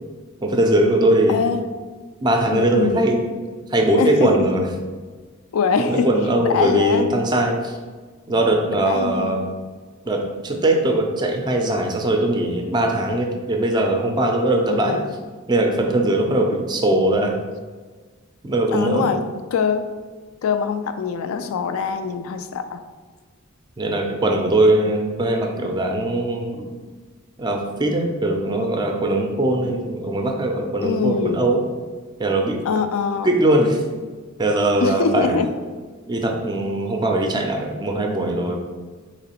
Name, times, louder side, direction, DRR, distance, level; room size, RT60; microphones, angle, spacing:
voice 1, 0.4-1.4 2.2-3.2 3.7-4.7 5.9-7.7 8.3-9.4 10.0-15.0 15.5-17.3 18.4-19.2 23.8-26.7 27.4-31.6 32.2-32.6 33.2-33.8 34.4-35.4 36.1-38.6, right 1 dB, 20° right, 2 dB, 0.4 m, -20 dB
voice 2, 1.3-1.7 2.5-3.1 4.0-4.5 5.5-6.1 6.4-7.1 8.8-9.4 14.7-15.1 18.7-19.2 19.5-19.9 20.4-22.8 30.8-31.4 32.6-33.3 34.8-35.5, left 5 dB, 75° left, 9 dB, 0.3 m, -23 dB
3.9 x 3.0 x 2.9 m, 1.4 s
head